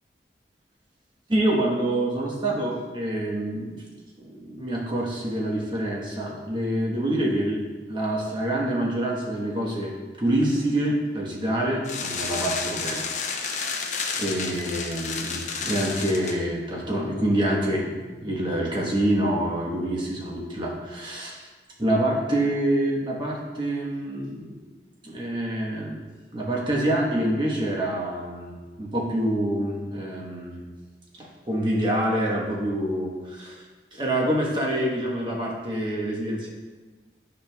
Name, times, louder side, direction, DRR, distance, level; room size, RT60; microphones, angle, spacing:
voice 1, 1.3-3.8 4.2-7.6 7.9-13.9 14.2-21.5 21.8-24.6 25.0-26.1 26.3-30.7 31.2-33.6 33.9-36.5, right 1 dB, 25° right, -3 dB, 1.1 m, -26 dB
sound 1, 11.8-16.4, left 5 dB, 40° left, 0.6 m, -31 dB
9.6 x 5.3 x 2.3 m, 1.4 s
head